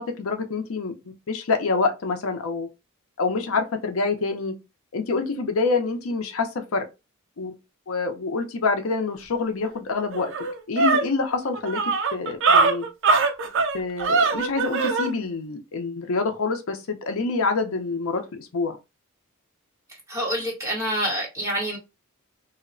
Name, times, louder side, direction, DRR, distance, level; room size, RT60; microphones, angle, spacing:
voice 1, 0.0-2.7 3.2-4.6 4.9-6.9 7.4-7.5 7.9-10.3 10.7-11.8 12.1-12.8 13.7-18.8, left 4 dB, 70° left, 0.5 m, -26 dB
sound 1, 9.6-9.7 10.1-15.1, right 4 dB, 60° right, 0.5 m, -22 dB
voice 2, 20.1-21.8, equal, 15° right, 1.1 m, -27 dB
2.7 x 2.1 x 2.5 m
head